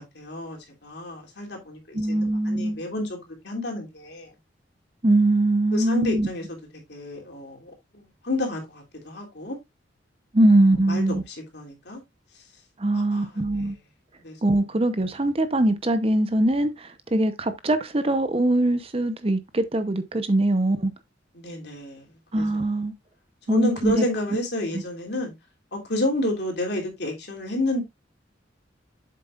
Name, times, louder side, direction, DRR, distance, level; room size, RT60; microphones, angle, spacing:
voice 1, 0.0-4.3 5.7-6.6 6.9-9.6 10.9-12.0 12.9-13.3 14.2-14.5 21.3-22.0 22.3-22.6 23.5-25.3 25.7-27.8, left 1 dB, 65° left, 3.0 m, -30 dB
voice 2, 1.9-2.8 5.0-6.3 10.3-11.2 12.8-13.8 14.4-20.9 22.3-22.9 23.5-24.0 24.7-24.8, right 1 dB, 30° right, 0.8 m, -22 dB
7.7 x 7.6 x 2.4 m
head